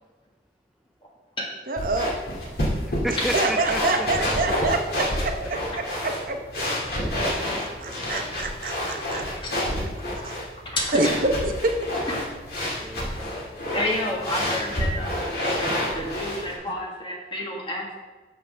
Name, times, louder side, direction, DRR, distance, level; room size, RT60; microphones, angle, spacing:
voice 1, 1.7-2.1 3.1-5.6 6.0-6.4 7.5-9.2 10.2-10.4 10.9-11.7, right 2 dB, 50° right, 4 dB, 0.8 m, -26 dB
sound 1, 1.8-16.5, left 1 dB, 60° left, 2.3 m, -29 dB
voice 2, 3.0-4.5 7.0-8.6 9.8-10.4 12.8-13.5, right 1 dB, ahead, 4 dB, 0.3 m, -35 dB
voice 3, 10.0-11.2 12.0-12.3 12.6-12.7 13.7-18.0, left 1 dB, 30° left, -1 dB, 1.7 m, -31 dB
11.5 x 6.8 x 3.4 m, 1.3 s
head